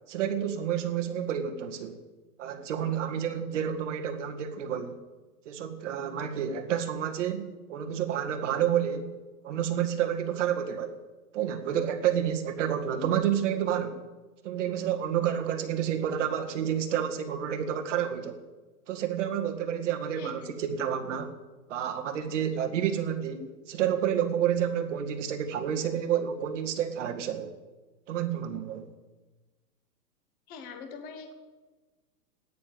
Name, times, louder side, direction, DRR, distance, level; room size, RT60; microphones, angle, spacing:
voice 1, 0.1-2.0 2.4-5.0 5.5-9.1 9.4-11.0 11.3-14.0 14.4-18.4 18.9-21.3 21.7-27.5 28.1-28.9, right 9 dB, 50° right, 5 dB, 2.0 m, -29 dB
voice 2, 20.2-20.5 30.5-31.3, left 5 dB, 20° left, 5 dB, 1.2 m, -43 dB
14.0 x 10.0 x 9.1 m, 1.2 s
hypercardioid pair, 160°, 47 cm